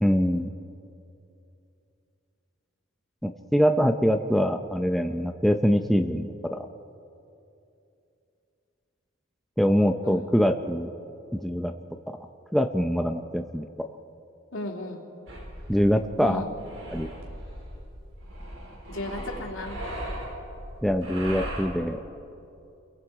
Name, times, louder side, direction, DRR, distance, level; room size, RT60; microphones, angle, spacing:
voice 1, 0.0-0.5 3.2-6.6 9.6-10.9 11.3-11.7 12.1-12.2 12.5-13.9 15.7-16.4 16.9-17.1 20.8-22.0, equal, ahead, 5 dB, 0.6 m, -24 dB
voice 2, 14.5-15.1 16.2-16.5 18.9-19.8, left 1 dB, 75° left, 0 dB, 3.0 m, -35 dB
sound 1, 15.3-21.7, right 1 dB, 70° right, 4.3 m, -38 dB
29.5 x 22.0 x 4.8 m, 2.7 s
head